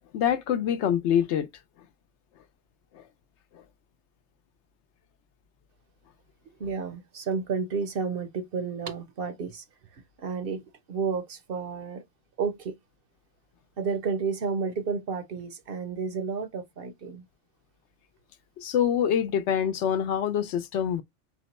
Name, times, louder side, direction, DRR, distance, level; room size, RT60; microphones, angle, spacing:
voice 1, 0.1-1.5 2.9-3.0 18.6-21.0, left 9 dB, 75° left, 0.9 m, -25 dB
voice 2, 6.6-9.6 10.2-10.6 10.9-12.0 12.4-12.7 13.8-17.3, right 5 dB, 60° right, 0.8 m, -31 dB
4.4 x 2.2 x 4.0 m
omnidirectional pair, 1.2 m